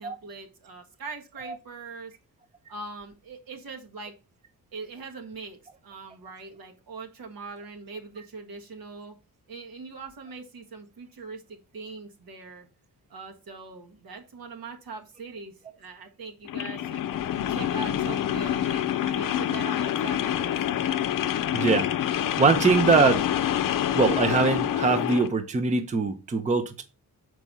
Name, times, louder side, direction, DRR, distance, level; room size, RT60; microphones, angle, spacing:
voice 1, 0.0-2.1 2.7-4.1 4.7-9.2 9.5-12.7 13.1-17.0 17.5-20.6, right 4 dB, 70° right, 1.7 m, -41 dB
sound 1, 16.4-25.3, left 11 dB, 65° left, 0.6 m, -27 dB
voice 2, 21.5-21.9 22.4-23.2 23.9-26.8, right 4 dB, 20° right, 0.6 m, -22 dB
6.0 x 4.6 x 5.4 m
wide cardioid pair, 145°, 36 cm